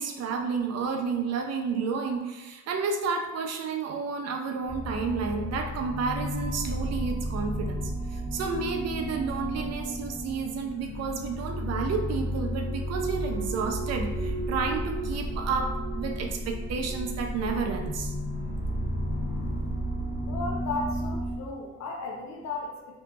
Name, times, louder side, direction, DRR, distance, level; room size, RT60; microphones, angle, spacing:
voice 1, 0.0-18.1, right 5 dB, 60° right, 4 dB, 0.5 m, -31 dB
sound 1, 4.7-21.4, equal, 40° left, 0.8 m, -32 dB
voice 2, 20.3-23.0, left 3 dB, 65° left, -1 dB, 0.7 m, -35 dB
2.8 x 2.6 x 2.3 m, 1.1 s
cardioid pair, 90°, 30 cm